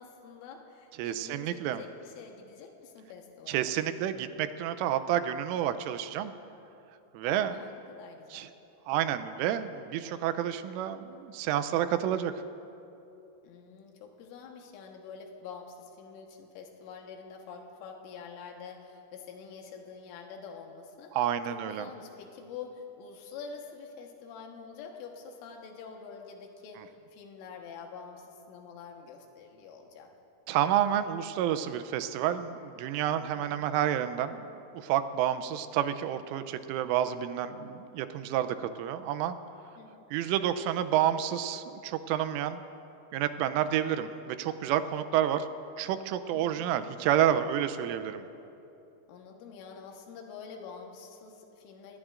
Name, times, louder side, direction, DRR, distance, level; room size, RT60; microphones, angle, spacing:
voice 1, 0.0-3.8 7.2-8.5 13.4-21.1 21.5-30.1 33.3-33.7 39.8-40.1 46.3-46.7 49.1-52.0, left 6 dB, 80° left, 2 dB, 3.8 m, -46 dB
voice 2, 1.0-1.8 3.5-6.3 7.1-7.6 8.3-8.5 8.9-12.3 21.1-21.9 26.8-26.9 30.5-39.4 40.1-42.6 43.1-45.5 45.8-48.2, right 10 dB, 90° right, 10 dB, 3.2 m, -29 dB
27.5 x 20.0 x 2.5 m, 2.8 s
omnidirectional pair, 5.6 m